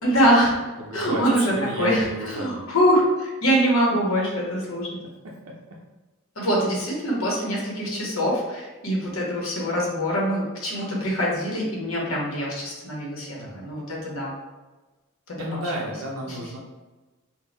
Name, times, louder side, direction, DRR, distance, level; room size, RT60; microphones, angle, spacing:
voice 1, 0.0-0.6 0.9-5.0 6.3-14.3 15.3-15.4 16.3-16.4, equal, 65° left, -3 dB, 1.1 m, -24 dB
voice 2, 0.8-2.7 5.2-5.5 13.4-13.7 15.4-16.6, equal, 80° right, -3 dB, 0.6 m, -32 dB
3.7 x 2.3 x 3.9 m, 1.2 s
head